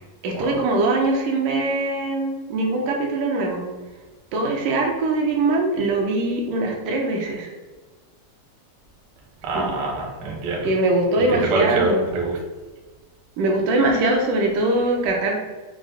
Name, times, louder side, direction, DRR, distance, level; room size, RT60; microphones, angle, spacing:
voice 1, 0.2-3.7 4.3-7.5 9.5-9.7 10.6-12.1 13.4-15.4, right 2 dB, 85° right, 0 dB, 2.4 m, -22 dB
voice 2, 9.4-10.7 11.3-12.4, right 2 dB, 65° right, -1 dB, 1.3 m, -24 dB
6.1 x 2.1 x 3.9 m, 1.2 s
omnidirectional pair, 3.7 m